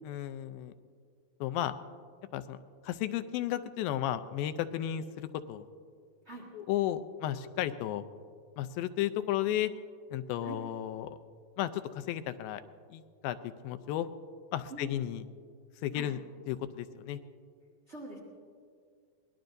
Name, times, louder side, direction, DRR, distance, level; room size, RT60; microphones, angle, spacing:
voice 1, 0.0-0.7 1.4-1.7 2.3-2.6 2.8-5.6 6.5-8.1 8.6-9.7 10.1-11.2 11.6-12.6 12.9-14.1 14.5-15.3 15.8-16.2 16.5-17.2, left 12 dB, 85° left, 11 dB, 2.4 m, -33 dB
voice 2, 17.9-18.2, right 3 dB, 55° right, -2 dB, 0.7 m, -43 dB
23.0 x 19.0 x 2.6 m, 2.1 s
omnidirectional pair, 4.1 m